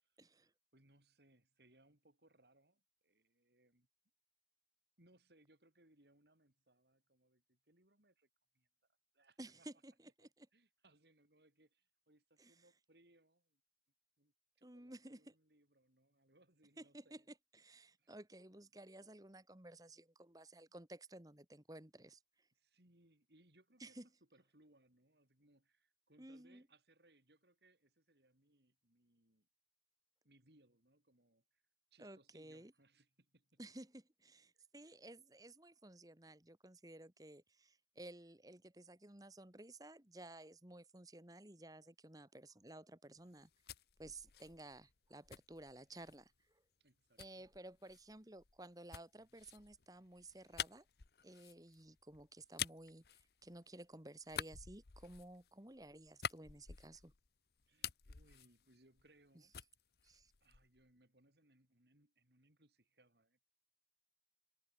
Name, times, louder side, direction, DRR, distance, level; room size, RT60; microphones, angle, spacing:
voice 1, 0.2-0.5 9.4-10.5 12.4-12.5 14.6-15.3 16.8-17.2 17.5-22.2 23.8-24.0 26.2-26.6 32.0-32.7 33.6-43.5 44.0-46.6 47.2-50.9 51.2-57.1 60.0-60.3, right 1 dB, 20° right, 1.6 m, -55 dB
voice 2, 0.7-3.9 5.0-8.3 8.5-8.7 9.1-9.7 10.2-13.6 14.2-17.3 18.0-18.1 20.7-20.8 22.5-24.0 24.3-29.5 30.2-31.6 31.9-33.6 34.5-34.7 46.8-47.5 57.7-59.6 60.4-63.4, right 1 dB, 70° right, 5.1 m, -71 dB
sound 1, 43.3-46.3 47.2-53.8 54.2-57.3 57.6-59.3 59.5-60.8, left 8 dB, 65° left, 0.9 m, -49 dB
head